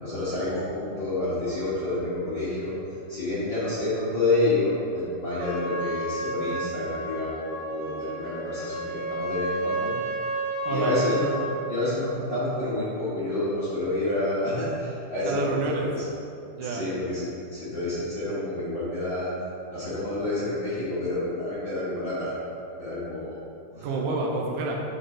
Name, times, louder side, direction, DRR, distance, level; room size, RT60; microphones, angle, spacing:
voice 1, 0.0-2.7 3.1-9.9 10.7-15.6 15.9-16.0 16.6-19.3 19.7-22.3 22.8-23.4 23.7-23.9, left 2 dB, 70° left, -12 dB, 1.1 m, -28 dB
Trumpet, 5.4-11.6, right 2 dB, 70° right, 2.5 m, -31 dB
voice 2, 10.7-11.0 15.2-15.9 16.5-16.9 23.8-24.8, right 3 dB, 85° right, -1 dB, 1.8 m, -29 dB
9.4 x 4.2 x 3.7 m, 2.7 s
omnidirectional pair, 4.5 m